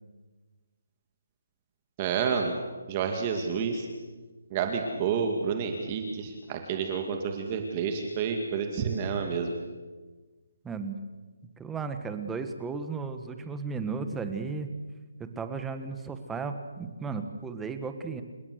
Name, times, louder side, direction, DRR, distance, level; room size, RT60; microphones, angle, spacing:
voice 1, 2.0-2.5 2.9-3.9 4.5-9.5, right 6 dB, 25° right, 4 dB, 2.3 m, -29 dB
voice 2, 10.6-11.0 11.6-14.7 15.2-18.2, right 4 dB, 5° right, 8 dB, 1.3 m, -34 dB
29.0 x 16.5 x 7.9 m, 1.3 s
hypercardioid pair, 170°, 0 cm